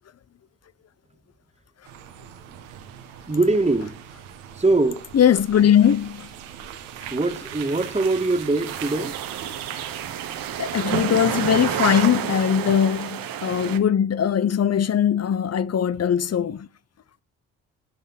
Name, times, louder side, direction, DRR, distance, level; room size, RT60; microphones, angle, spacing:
sound 1, 1.8-12.1, right 10 dB, 80° right, 1.7 m, -37 dB
voice 1, 3.3-4.0 4.5-5.0 7.1-9.2 13.6-13.7, right 2 dB, 15° right, 2.1 m, -22 dB
voice 2, 5.1-6.3 10.6-16.7, left 9 dB, 40° left, 1.0 m, -20 dB
sound 2, 8.6-13.8, right 10 dB, 65° right, 1.6 m, -30 dB
20.0 x 7.2 x 4.3 m
hypercardioid pair, 45°, 37 cm